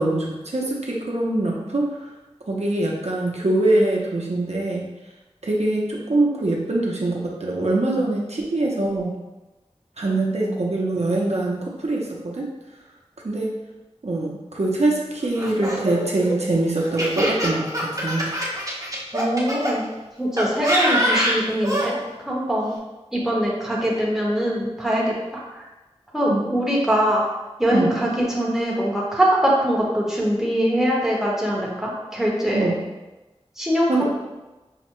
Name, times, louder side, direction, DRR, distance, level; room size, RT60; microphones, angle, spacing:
voice 1, 0.0-2.1 2.5-4.8 5.4-9.2 10.0-12.5 13.2-13.6 14.0-18.3 26.3-26.5 27.7-27.9 32.5-32.8 33.9-34.1, right 2 dB, 75° right, -3 dB, 0.6 m, -23 dB
Laughter, 15.4-19.7 20.4-21.9, equal, 30° right, 0.9 m, -24 dB
voice 2, 19.1-19.8 20.2-21.9 22.2-22.8 23.1-25.7 26.1-27.2 27.6-32.7 33.6-34.1, equal, 5° right, -4 dB, 1.0 m, -22 dB
5.5 x 2.1 x 3.0 m, 1.1 s
wide cardioid pair, 40°, 11 cm